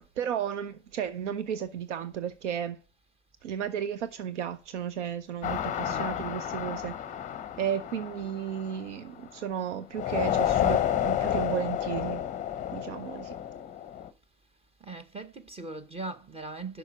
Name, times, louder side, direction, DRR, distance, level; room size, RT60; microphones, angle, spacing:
voice 1, 0.0-2.8 3.4-7.0 7.6-12.2 12.7-13.4, right 9 dB, 85° right, 0.6 m, -33 dB
sound 1, 5.4-9.4 10.0-14.1, left 11 dB, 20° left, 0.7 m, -30 dB
voice 2, 5.8-6.1 14.8-16.8, right 3 dB, 15° right, 0.8 m, -40 dB
6.4 x 5.6 x 5.8 m
hypercardioid pair, 110°, 35 cm